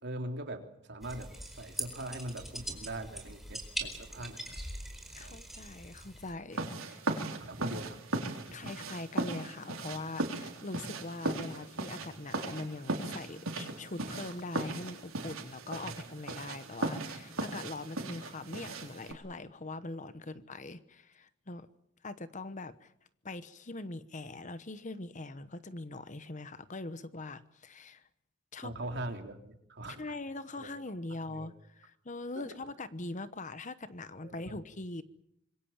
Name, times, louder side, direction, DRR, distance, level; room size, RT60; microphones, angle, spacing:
voice 1, 0.0-4.6 5.2-5.4 7.4-8.0 8.5-8.6 15.8-15.9 28.6-30.1 30.6-30.7 31.3-31.6 32.4-32.5 34.2-34.6, right 1 dB, 55° right, 4 dB, 3.4 m, -41 dB
sound 1, 1.0-6.3, right 1 dB, ahead, 4.3 m, -42 dB
voice 2, 5.1-7.0 8.5-21.7 22.0-22.9 23.2-28.0 28.5-28.7 30.0-35.0, left 2 dB, 35° left, 13 dB, 1.0 m, -42 dB
sound 2, 6.5-19.1, right 2 dB, 80° right, 3.8 m, -38 dB
26.0 x 22.5 x 7.4 m, 0.76 s
head